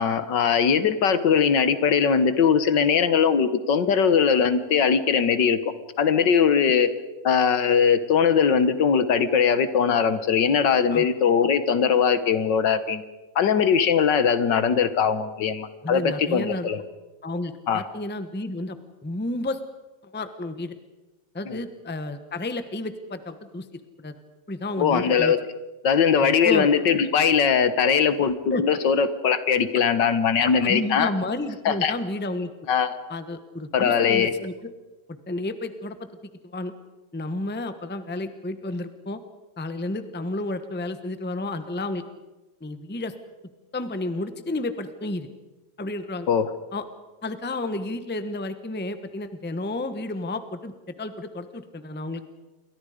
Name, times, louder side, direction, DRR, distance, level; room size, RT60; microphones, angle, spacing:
voice 1, 0.0-5.6 6.0-6.9 7.2-13.0 13.4-16.8 17.7-17.8 21.5-21.6 24.8-25.4 25.8-31.1 31.7-31.9 32.7-32.9 33.7-34.3 46.3-46.5, left 6 dB, 70° left, 12 dB, 1.8 m, -20 dB
voice 2, 15.8-16.7 17.2-19.6 20.1-20.8 21.3-24.2 24.5-25.3 26.2-26.7 28.5-28.6 30.4-32.5 33.1-34.5 35.1-36.0 36.4-36.7 37.1-39.2 39.6-42.0 42.6-43.1 43.7-45.3 45.8-46.3 46.7-46.8 47.2-50.7 51.0-52.2, left 2 dB, 5° left, 10 dB, 0.9 m, -31 dB
28.5 x 23.5 x 5.1 m, 1.2 s
omnidirectional pair, 2.1 m